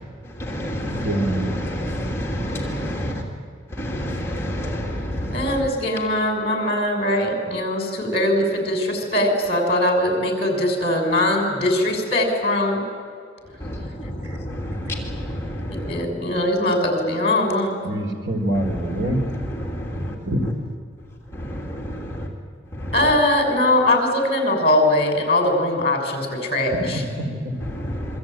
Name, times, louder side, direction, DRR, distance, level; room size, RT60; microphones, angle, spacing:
voice 1, 0.4-3.2 3.7-5.5 13.6-16.0 19.0-19.1 19.6-20.1 21.4-22.3 22.8-23.0 27.7-28.2, equal, 15° left, 2.8 m, -29 dB
voice 2, 0.9-1.6 14.2-14.8 17.8-19.2 20.2-20.7 26.7-27.5, right 1 dB, 75° right, 4.1 m, -26 dB
voice 3, 5.3-12.8 15.7-17.8 22.9-27.0, left 1 dB, 35° left, 5.9 m, -21 dB
27.0 x 24.0 x 9.1 m
head